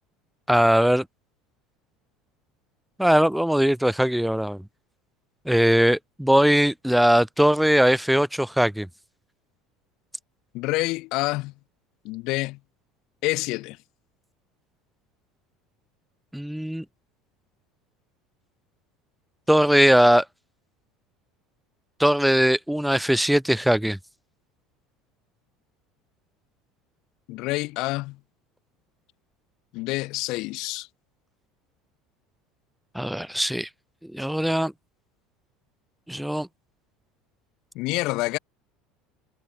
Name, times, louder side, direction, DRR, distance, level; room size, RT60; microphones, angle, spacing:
voice 1, 0.5-1.0 3.0-4.6 5.5-8.9 16.3-16.8 19.5-20.2 22.0-24.0 32.9-33.7 34.1-34.7 36.1-36.5, equal, ahead, 0.8 m, -20 dB
voice 2, 10.5-11.5 12.0-12.6 13.2-13.8 27.3-28.2 29.7-30.9 37.7-38.4, left 21 dB, 60° left, 1.4 m, -27 dB
hypercardioid pair, 70°, 0 cm